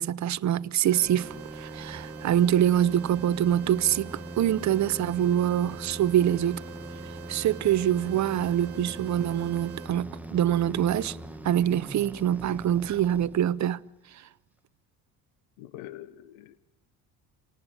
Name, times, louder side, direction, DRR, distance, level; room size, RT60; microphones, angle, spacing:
voice 1, 0.0-6.6 7.3-11.2 11.4-13.8, right 11 dB, 45° right, 0.8 m, -25 dB
sound 1, 0.9-9.9, right 14 dB, 85° right, 1.5 m, -46 dB
sound 2, 1.0-13.8, right 1 dB, 5° right, 1.4 m, -42 dB
voice 2, 15.6-16.6, left 13 dB, 80° left, 1.0 m, -44 dB
29.0 x 18.5 x 8.3 m
hypercardioid pair, 75°, 41 cm